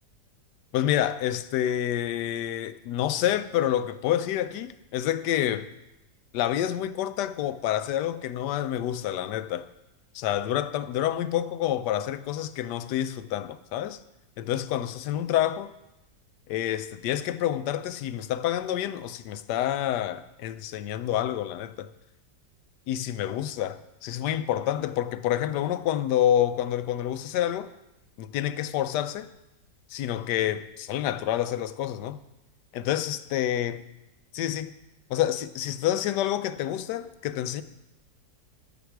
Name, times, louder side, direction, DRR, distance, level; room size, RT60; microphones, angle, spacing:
voice 1, 0.7-5.7 6.3-9.7 10.1-14.0 14.4-15.7 16.5-21.9 22.9-27.7 28.2-29.3 29.9-32.2 32.7-33.8 34.3-34.7 35.1-37.6, left 11 dB, 80° left, 1.2 m, -28 dB
13.5 x 8.1 x 4.6 m
omnidirectional pair, 1.8 m